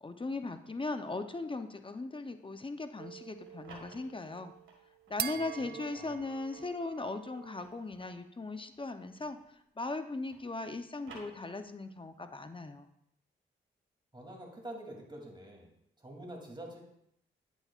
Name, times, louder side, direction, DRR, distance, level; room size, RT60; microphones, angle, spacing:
voice 1, 0.0-4.5 5.1-9.4 9.8-12.9, left 3 dB, 25° left, 8 dB, 0.7 m, -38 dB
sound 1, 3.0-7.8, right 9 dB, 55° right, 0.4 m, -44 dB
sound 2, 3.5-5.4 5.9-9.7 9.9-11.9, right 4 dB, 80° right, 1.8 m, -57 dB
voice 2, 5.3-6.2 14.1-15.7 16.0-16.8, right 1 dB, 25° right, 0 dB, 2.9 m, -47 dB
9.6 x 8.1 x 2.5 m, 0.75 s
supercardioid pair, 50°, 20 cm